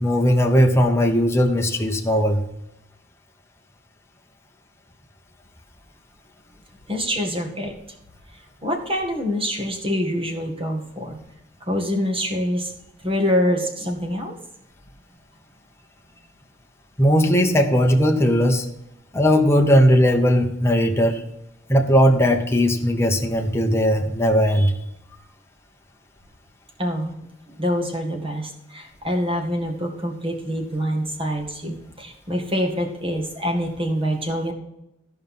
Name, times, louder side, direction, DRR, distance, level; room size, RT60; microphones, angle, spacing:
voice 1, 0.0-2.4 17.0-18.6 19.1-21.2 21.7-24.7, equal, 15° left, 2 dB, 1.0 m, -18 dB
voice 2, 6.9-7.7 8.6-11.2 11.7-12.7 13.0-14.4 26.8-27.2 27.6-34.5, equal, 30° right, 2 dB, 1.9 m, -25 dB
14.0 x 5.4 x 5.6 m, 0.85 s
head